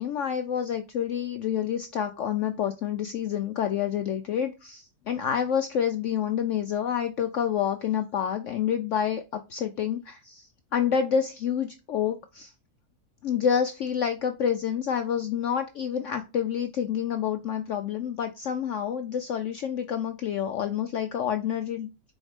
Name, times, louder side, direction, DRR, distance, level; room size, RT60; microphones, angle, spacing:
voice 1, 0.0-12.5 13.2-21.9, left 8 dB, 65° left, 7 dB, 0.8 m, -28 dB
5.2 x 4.0 x 4.9 m, 0.27 s
omnidirectional pair, 1.7 m